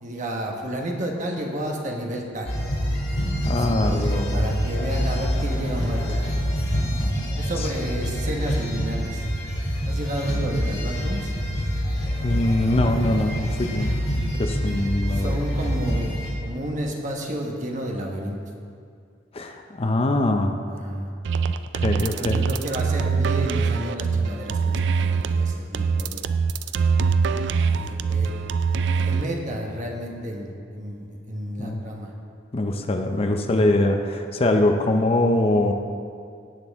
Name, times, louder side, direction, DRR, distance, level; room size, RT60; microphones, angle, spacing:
voice 1, 0.0-2.5 3.6-6.2 7.4-9.3 9.8-11.3 15.1-18.4 20.7-21.1 22.1-26.3 26.6-26.9 27.3-27.4 27.7-28.3 29.1-32.1 33.0-33.7, right 1 dB, 40° right, 0 dB, 1.2 m, -31 dB
sound 1, 2.4-16.3, equal, 55° left, 2.3 m, -26 dB
voice 2, 3.5-4.6 7.6-7.7 12.2-13.9 14.4-15.3 19.3-20.5 21.7-22.4 31.6-31.8 32.5-35.7, left 1 dB, 30° left, 5 dB, 0.5 m, -23 dB
sound 2, 21.2-29.3, right 5 dB, 65° right, 0.3 m, -23 dB
17.0 x 6.2 x 3.6 m, 2.3 s
head